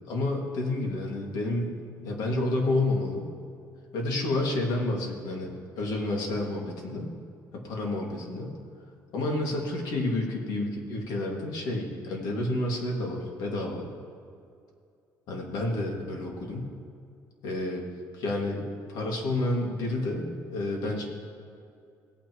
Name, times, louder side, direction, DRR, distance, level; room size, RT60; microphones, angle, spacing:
voice 1, 0.1-3.3 3.9-7.1 7.5-8.5 9.1-13.9 15.3-16.7 17.4-17.8 18.1-21.1, left 2 dB, 70° left, 0 dB, 2.1 m, -30 dB
17.0 x 9.1 x 3.0 m, 2.5 s
cardioid pair, 155°, 7 cm